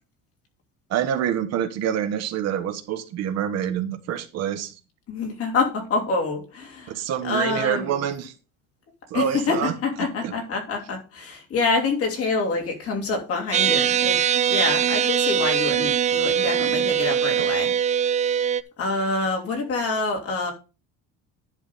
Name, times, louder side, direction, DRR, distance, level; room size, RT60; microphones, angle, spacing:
voice 1, 0.9-4.7 6.9-8.3 9.1-9.7 10.2-10.3, right 9 dB, 55° right, 1.3 m, -26 dB
voice 2, 5.1-8.0 9.1-14.2 14.5-17.7 18.3-20.5, left 3 dB, 50° left, 3.0 m, -26 dB
sound 1, 13.5-18.6, right 9 dB, 25° right, 0.4 m, -22 dB
10.5 x 3.7 x 6.7 m
cardioid pair, 145°, 31 cm